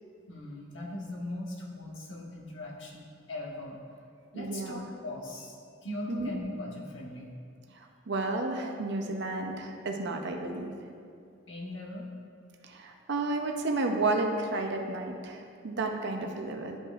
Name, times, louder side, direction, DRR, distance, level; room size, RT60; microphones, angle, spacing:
voice 1, 0.3-3.8 4.3-5.6 5.8-7.3 11.5-12.1, left 1 dB, 70° left, -2 dB, 1.3 m, -39 dB
voice 2, 4.3-4.9 6.1-6.3 7.7-10.7 12.6-16.8, right 2 dB, 60° right, 3 dB, 0.7 m, -32 dB
11.5 x 5.2 x 2.5 m, 2.3 s
head